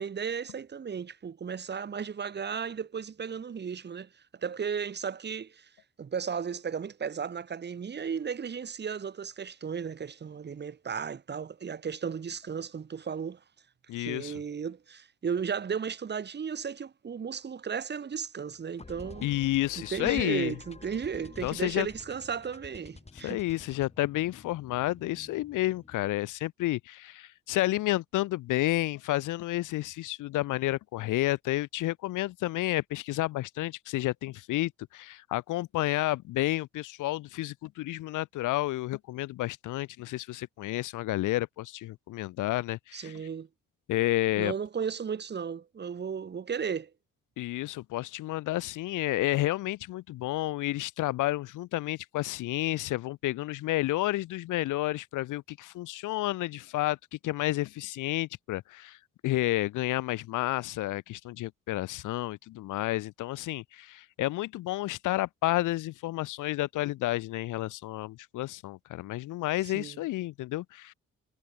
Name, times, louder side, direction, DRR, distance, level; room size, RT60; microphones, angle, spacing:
voice 1, 0.0-5.7 6.0-13.4 14.0-19.3 19.8-23.4 42.9-43.5 44.4-46.9 69.7-70.0, right 6 dB, 35° right, 1.3 m, -35 dB
voice 2, 13.9-14.4 19.2-20.5 21.4-21.9 23.1-43.2 43.9-44.5 47.4-59.0 59.2-70.9, left 17 dB, 85° left, 0.9 m, -31 dB
sound 1, 18.8-26.1, left 3 dB, 20° left, 3.6 m, -49 dB
cardioid pair, 90°, 30 cm